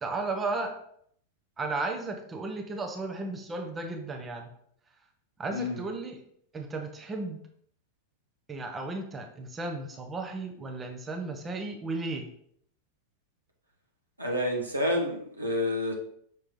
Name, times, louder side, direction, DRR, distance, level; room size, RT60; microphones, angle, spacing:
voice 1, 0.0-0.8 1.6-4.5 5.4-6.2 6.5-7.4 8.5-12.3, right 3 dB, 20° right, 3 dB, 0.9 m, -34 dB
voice 2, 14.2-15.9, left 1 dB, 85° right, -2 dB, 1.5 m, -29 dB
6.1 x 3.3 x 5.1 m, 0.66 s
figure-of-eight pair, 90°, 0 cm